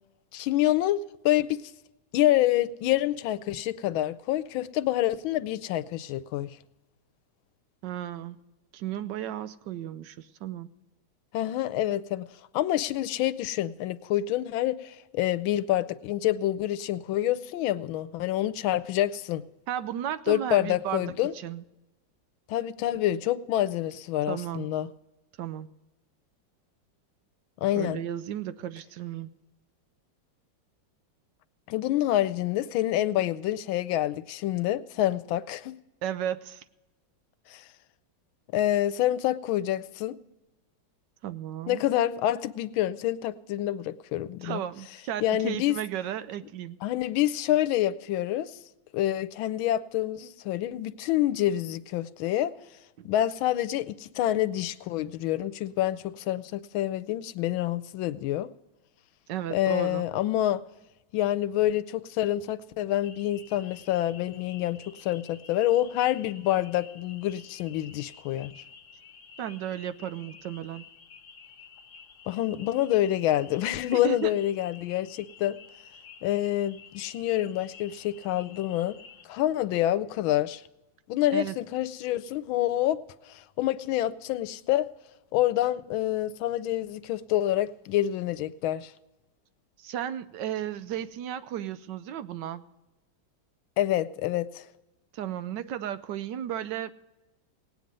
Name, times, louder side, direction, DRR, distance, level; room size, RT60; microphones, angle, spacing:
voice 1, 0.3-1.6 2.1-6.6 11.3-12.3 12.5-19.4 20.3-21.3 22.5-24.9 27.6-28.0 31.7-35.7 37.5-37.7 38.5-40.2 41.7-44.6 45.2-45.8 46.8-48.5 48.9-52.5 53.0-58.5 59.5-60.6 61.1-68.6 72.3-75.6 76.2-79.0 79.2-80.6 81.1-83.0 83.3-84.9 85.3-88.9 93.8-94.6, left 13 dB, 85° left, 15 dB, 1.4 m, -27 dB
voice 2, 7.8-8.4 8.7-10.7 19.7-21.6 24.3-24.7 25.4-25.7 27.7-29.3 36.0-36.6 41.2-41.8 44.4-46.8 53.0-53.1 59.3-60.0 69.4-70.8 73.9-74.3 81.3-81.6 89.8-92.6 95.1-96.9, right 10 dB, 70° right, 13 dB, 1.2 m, -34 dB
sound 1, 63.0-79.2, left 6 dB, 55° left, 1.5 m, -51 dB
18.0 x 9.3 x 5.3 m, 1.0 s
omnidirectional pair, 2.1 m